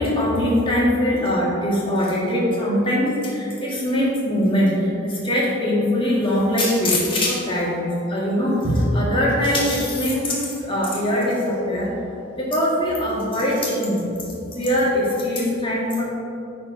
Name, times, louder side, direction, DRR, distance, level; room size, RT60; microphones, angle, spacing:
voice 1, 0.0-11.9 12.4-14.1 14.5-16.0, left 1 dB, 25° left, -5 dB, 1.8 m, -21 dB
8.7 x 4.4 x 5.3 m, 2.8 s
head